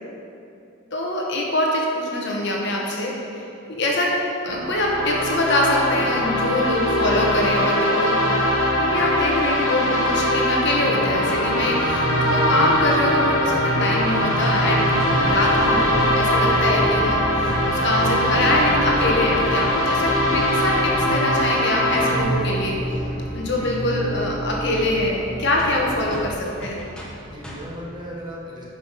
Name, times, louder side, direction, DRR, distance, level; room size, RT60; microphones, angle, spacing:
voice 1, 0.9-3.4 3.7-8.2 8.7-22.8 23.3-26.8, left 1 dB, 55° left, -1 dB, 1.3 m, -24 dB
sound 1, 4.5-22.2, left 1 dB, 70° left, 1.4 m, -21 dB
sound 2, 10.9-26.2, right 2 dB, 35° right, 1.6 m, -30 dB
sound 3, 11.3-11.4 11.7-12.4 12.7-13.6 13.8-20.8 24.1-24.2 24.5-24.6 24.9-25.0 25.2-25.3 25.6-27.8, equal, 5° left, 1.0 m, -39 dB
voice 2, 23.3-23.8 27.2-28.6, equal, 20° right, -4 dB, 1.4 m, -37 dB
8.9 x 5.8 x 5.7 m, 2.7 s
head